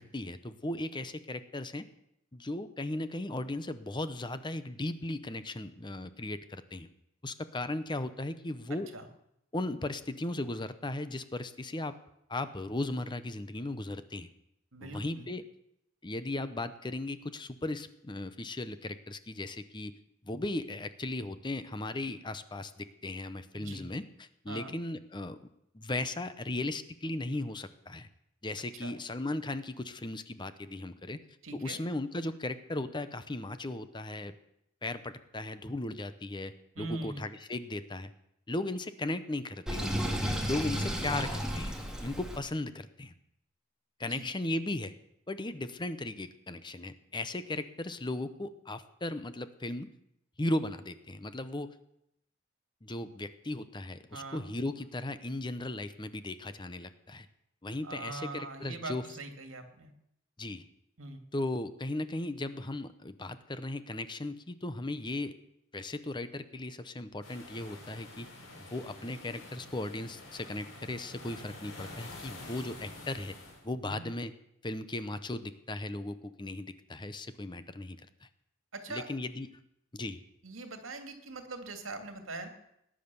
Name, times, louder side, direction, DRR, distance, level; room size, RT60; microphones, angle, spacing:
voice 1, 0.0-1.8 2.3-6.9 7.2-8.9 9.5-12.0 12.3-14.3 14.8-15.4 16.0-19.9 20.2-25.4 25.7-28.1 28.4-31.2 31.5-34.3 34.8-38.1 38.5-39.8 40.2-41.8 42.0-43.1 44.0-44.9 45.3-49.9 50.4-51.7 52.8-57.3 57.6-59.0 60.4-60.7 61.3-65.3 65.7-68.3 68.6-73.4 73.6-74.3 74.6-78.3 78.9-79.5 79.9-80.2, left 2 dB, 25° left, 12 dB, 0.8 m, -37 dB
voice 2, 14.7-15.3 23.5-23.8 24.5-24.7 28.8-28.9 31.4-31.8 36.8-37.3 40.7-41.1 44.0-44.3 54.1-54.4 57.8-59.9 61.0-61.2 73.8-74.0 78.7-79.1 80.4-82.5, right 2 dB, 75° right, 7 dB, 2.4 m, -42 dB
Sink (filling or washing), 39.7-42.4, equal, 5° right, 2.2 m, -33 dB
sound 1, 67.2-73.6, left 2 dB, 65° left, 4.6 m, -48 dB
19.0 x 10.0 x 7.0 m, 0.78 s
head